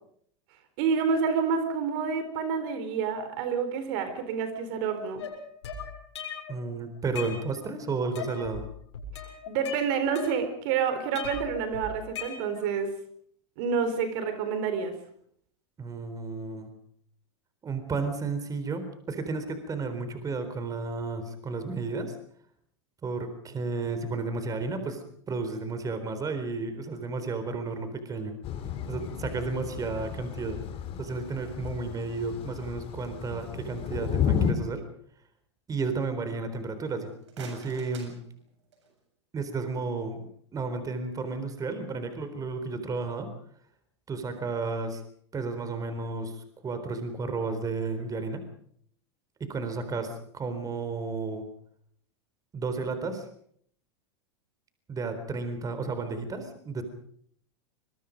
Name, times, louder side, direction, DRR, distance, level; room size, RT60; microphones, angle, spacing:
voice 1, 0.8-5.2 9.5-12.9 13.6-15.0, right 6 dB, 60° right, 9 dB, 4.2 m, -28 dB
sound 1, 5.2-6.6 6.9-7.8 8.1-8.6 8.9-10.7 11.1-12.8, left 6 dB, 80° left, 7.1 m, -39 dB
voice 2, 6.5-8.7 15.8-16.7 17.6-22.2 23.0-28.4 28.9-30.6 31.0-34.8 35.7-38.2 39.3-40.2 40.5-43.3 44.1-45.0 45.3-48.4 49.4-51.4 52.5-53.3 54.9-56.8, right 4 dB, 25° right, 9 dB, 4.0 m, -32 dB
Thunder / Rain, 28.4-34.5, left 8 dB, 40° left, 3.1 m, -32 dB
sound 2, 37.1-39.0, right 5 dB, 80° right, 7.6 m, -49 dB
26.0 x 22.5 x 5.3 m, 0.63 s
hypercardioid pair, 105°, 15 cm